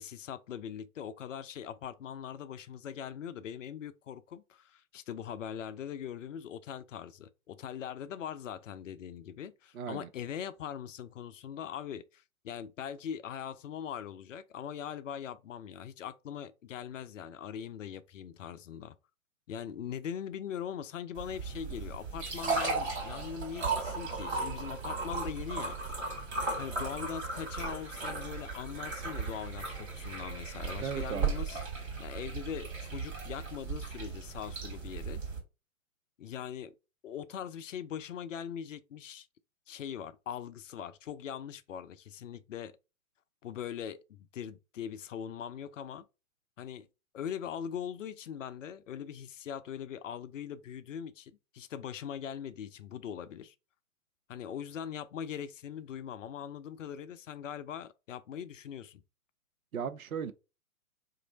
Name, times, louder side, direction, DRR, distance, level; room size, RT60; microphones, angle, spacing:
voice 1, 0.0-19.0 19.5-25.8 26.6-35.2 36.2-36.7 37.0-39.3 39.7-42.7 43.4-46.0 46.6-46.9 47.1-53.5 54.3-59.0, left 8 dB, 60° left, 0.5 m, -41 dB
voice 2, 9.7-10.1 30.8-31.3 59.7-60.3, right 7 dB, 75° right, 0.6 m, -36 dB
sound 1, 21.2-35.4, right 4 dB, 35° right, 2.0 m, -36 dB
3.0 x 2.6 x 3.9 m
figure-of-eight pair, 120°, 43 cm